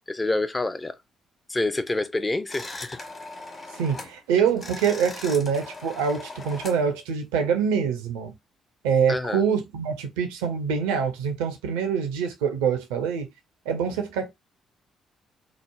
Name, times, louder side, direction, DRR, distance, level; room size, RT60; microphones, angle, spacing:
voice 1, 0.1-1.0 1.5-3.0 9.1-9.4, left 2 dB, 20° left, 0.4 m, -27 dB
sound 1, 2.5-4.2 4.5-6.8, left 2 dB, 35° left, 1.0 m, -39 dB
voice 2, 3.8-8.3 8.8-13.3 13.7-14.3, right 7 dB, 70° right, 0.5 m, -25 dB
3.1 x 2.0 x 2.2 m
figure-of-eight pair, 45°, 0 cm